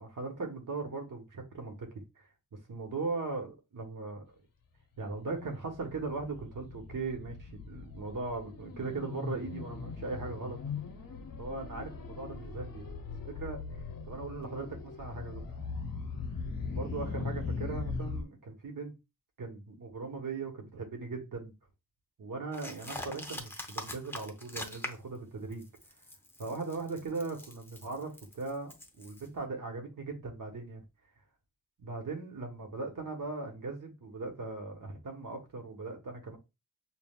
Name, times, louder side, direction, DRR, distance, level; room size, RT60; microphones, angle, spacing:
voice 1, 0.0-2.3 2.7-4.3 5.0-10.6 11.4-12.8 13.3-15.6 16.7-18.9 19.4-21.5 22.2-25.7 26.4-30.8 31.8-36.4, right 3 dB, 65° right, 1.2 m, -39 dB
sound 1, 5.1-18.2, left 4 dB, 75° left, 0.7 m, -40 dB
sound 2, 22.5-25.2 25.5-29.3, left 1 dB, 5° left, 0.7 m, -43 dB
5.4 x 2.3 x 2.3 m
wide cardioid pair, 75°, 34 cm